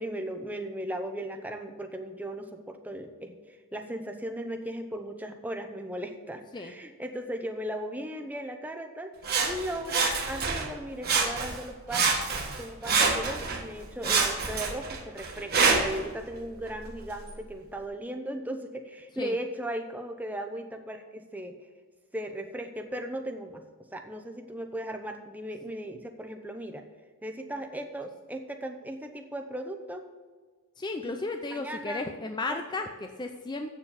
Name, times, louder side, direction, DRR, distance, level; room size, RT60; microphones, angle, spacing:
voice 1, 0.0-3.4 3.7-9.1 9.4-12.1 12.3-21.5 22.1-23.6 23.9-26.8 27.2-30.0 31.0-31.2 31.5-32.1 32.5-32.6, right 1 dB, 10° right, 5 dB, 0.8 m, -37 dB
Sawing, 9.2-10.7 11.0-11.6 11.9-13.6 14.0-16.0 16.7-16.8, right 4 dB, 45° right, 1.7 m, -26 dB
voice 2, 30.8-33.7, left 2 dB, 20° left, 5 dB, 0.5 m, -34 dB
8.4 x 7.3 x 7.1 m, 1.4 s
head